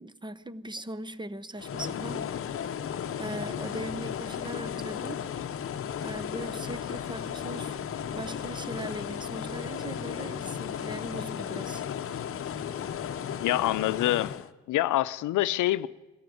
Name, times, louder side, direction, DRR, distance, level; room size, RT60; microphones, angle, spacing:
voice 1, 0.0-2.3 2.6-2.8 3.2-5.3 6.0-11.9, right 1 dB, 15° right, 0.8 m, -40 dB
sound 1, 1.6-14.5, left 8 dB, 45° left, 0.8 m, -35 dB
voice 2, 13.4-14.3 14.7-15.9, left 15 dB, 80° left, 0.6 m, -26 dB
21.5 x 14.0 x 9.4 m
cardioid pair, 90°, 30 cm